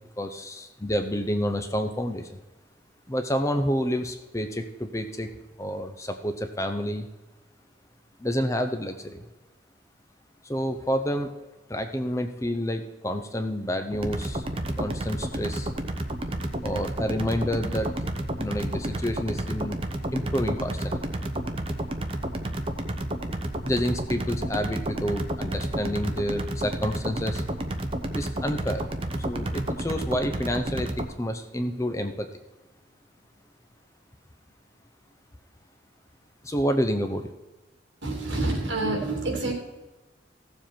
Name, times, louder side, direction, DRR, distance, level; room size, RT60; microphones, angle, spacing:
voice 1, 0.2-2.4 3.1-5.3 5.6-7.1 8.2-9.3 10.4-11.3 11.7-14.4 14.8-15.7 16.6-17.9 18.4-19.8 20.1-21.0 23.6-27.4 28.1-28.8 29.2-32.3 36.4-37.3, equal, 15° left, 7 dB, 0.6 m, -29 dB
sound 1, 13.9-31.1, right 1 dB, 30° right, 0.8 m, -31 dB
voice 2, 38.0-39.5, right 2 dB, 70° right, 1 dB, 2.8 m, -27 dB
15.5 x 7.3 x 4.4 m, 1.1 s
head